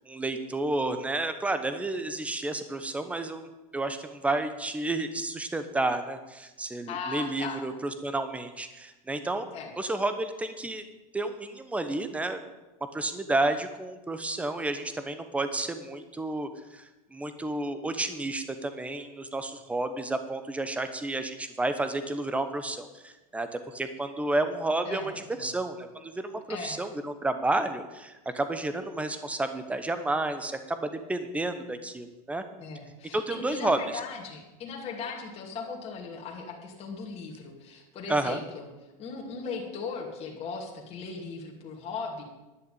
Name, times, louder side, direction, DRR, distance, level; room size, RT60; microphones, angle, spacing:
voice 1, 0.1-3.5 3.7-10.9 11.1-12.5 12.9-32.4 33.1-33.8 38.1-38.4, right 2 dB, 5° right, 9 dB, 1.0 m, -31 dB
voice 2, 6.9-7.6 9.5-9.7 24.8-25.5 26.5-26.8 32.6-38.7 39.0-42.2, left 4 dB, 35° left, -1 dB, 2.6 m, -38 dB
11.0 x 6.6 x 8.5 m, 1.1 s
supercardioid pair, 135°, 19 cm